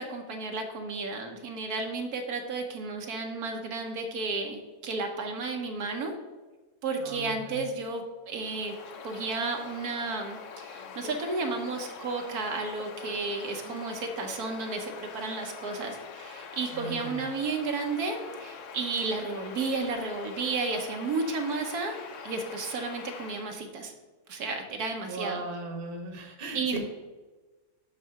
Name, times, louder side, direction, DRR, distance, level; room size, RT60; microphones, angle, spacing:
voice 1, 0.0-6.1 6.8-8.7 9.0-22.0 22.2-23.9 24.3-25.4 26.5-26.8, right 3 dB, 75° right, 3 dB, 1.4 m, -32 dB
voice 2, 7.0-7.6 16.7-17.2 25.1-26.8, right 3 dB, 40° right, 3 dB, 1.2 m, -38 dB
Bird vocalization bird call bird song, 8.3-23.6, left 6 dB, 60° left, 1.0 m, -44 dB
6.1 x 5.6 x 5.7 m, 1.2 s
omnidirectional pair, 1.6 m